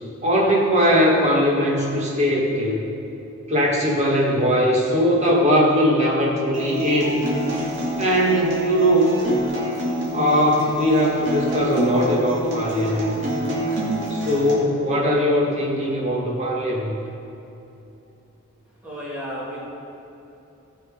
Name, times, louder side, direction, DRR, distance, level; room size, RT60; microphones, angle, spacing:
voice 1, 0.2-2.8 3.5-7.2 8.0-9.1 10.1-13.2 14.1-17.0, equal, 30° right, -3 dB, 1.8 m, -20 dB
Acoustic guitar, 6.5-14.5, right 1 dB, 60° right, 2.5 m, -27 dB
voice 2, 18.8-19.6, equal, 5° right, -8 dB, 2.8 m, -32 dB
16.0 x 5.7 x 5.4 m, 2.9 s
head